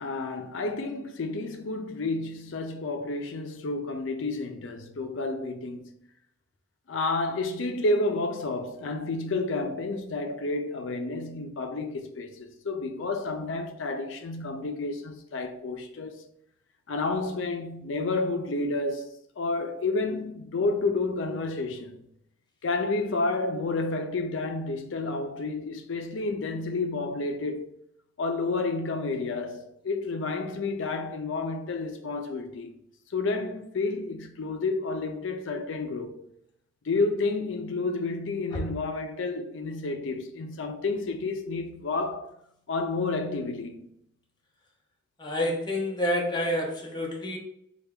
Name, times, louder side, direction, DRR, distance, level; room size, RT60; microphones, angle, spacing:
voice 1, 0.0-5.9 6.9-16.2 16.9-22.0 22.6-27.7 28.2-32.7 33.1-36.2 36.8-42.4 42.7-43.9, left 3 dB, 90° left, 0.5 m, -30 dB
voice 2, 45.2-47.4, left 1 dB, 25° left, 0.6 m, -28 dB
3.3 x 2.3 x 3.5 m
head